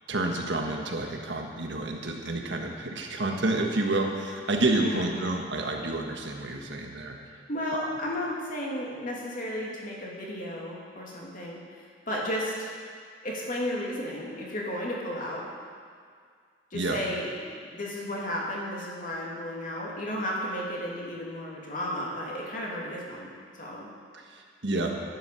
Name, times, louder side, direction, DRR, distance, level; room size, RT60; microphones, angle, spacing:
voice 1, 0.1-7.2 7.7-7.8 16.7-17.0 24.1-24.9, right 2 dB, 65° right, 1 dB, 1.5 m, -29 dB
voice 2, 4.8-5.4 7.5-11.6 12.1-12.5 13.2-15.5 16.7-17.4 17.7-23.3 23.6-23.9, left 1 dB, 45° left, -3 dB, 2.6 m, -33 dB
11.0 x 10.5 x 6.9 m, 2.1 s
head